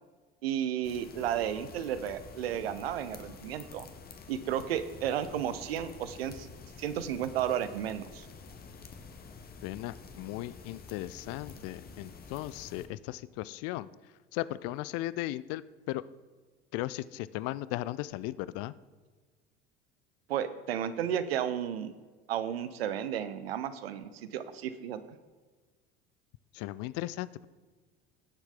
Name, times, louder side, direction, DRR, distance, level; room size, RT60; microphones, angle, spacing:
voice 1, 0.4-3.9 4.3-6.5 6.8-8.3 20.3-21.9 22.3-25.2, right 10 dB, 70° right, 12 dB, 0.8 m, -33 dB
sound 1, 0.8-12.9, left 4 dB, 30° left, 1.3 m, -49 dB
voice 2, 9.6-13.9 14.3-16.0 16.7-18.7 26.5-27.3, left 16 dB, 50° left, 18 dB, 0.5 m, -36 dB
17.5 x 7.1 x 3.8 m, 1.4 s
figure-of-eight pair, 65°, 31 cm